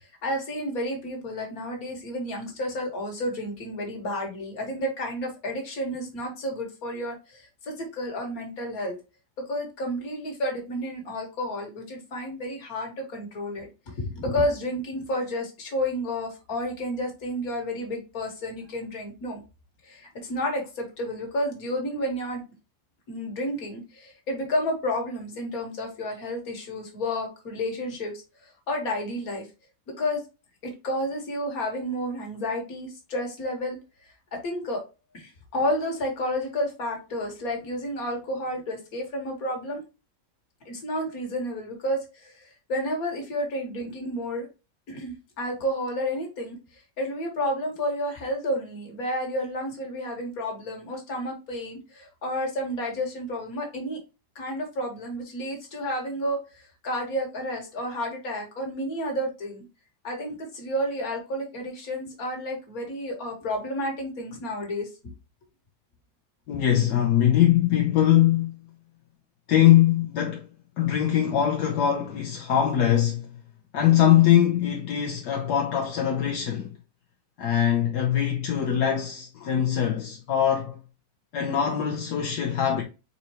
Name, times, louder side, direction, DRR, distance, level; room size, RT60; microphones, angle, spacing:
voice 1, 0.0-9.0 9.5-19.4 19.8-22.4 23.1-28.1 28.7-29.5 30.0-30.2 30.8-33.8 34.3-34.8 35.1-39.8 40.7-42.3 42.7-44.5 44.9-46.6 47.0-54.0 54.4-59.7 60.0-64.9, equal, 65° left, 2.0 m, -31 dB
voice 2, 66.5-68.5 69.5-70.4 70.8-73.3 73.7-76.7 77.4-80.8 81.3-82.8, left 11 dB, 80° left, 1.4 m, -22 dB
4.3 x 4.1 x 3.0 m
omnidirectional pair, 1.7 m